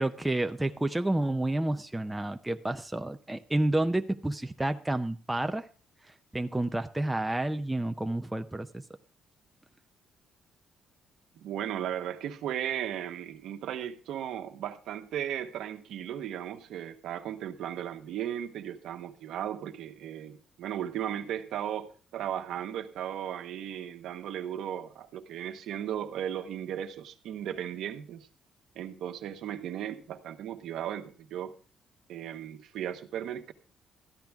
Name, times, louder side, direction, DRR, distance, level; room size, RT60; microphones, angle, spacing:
voice 1, 0.0-5.7 6.3-8.8, right 1 dB, 10° right, 7 dB, 0.5 m, -30 dB
voice 2, 11.4-28.3 28.7-31.5 32.1-33.5, right 10 dB, 75° right, 6 dB, 1.1 m, -36 dB
13.5 x 10.5 x 3.5 m, 0.38 s
cardioid pair, 130°, 0 cm